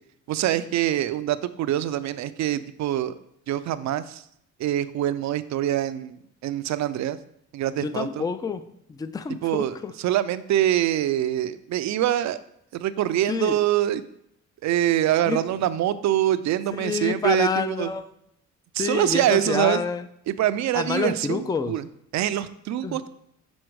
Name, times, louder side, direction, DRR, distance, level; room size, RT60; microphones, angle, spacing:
voice 1, 0.3-3.2 3.5-4.2 4.6-7.2 7.5-8.2 9.4-12.4 12.7-14.0 14.6-17.9 18.7-19.8 20.3-21.9 22.1-23.1, right 12 dB, 65° right, 13 dB, 0.5 m, -24 dB
voice 2, 7.8-9.9 13.3-13.6 15.3-15.4 16.7-18.1 18.8-20.0 20.7-21.7 22.8-23.0, left 5 dB, 15° left, 11 dB, 0.4 m, -28 dB
6.2 x 4.3 x 4.6 m, 0.74 s
cardioid pair, 90°, 30 cm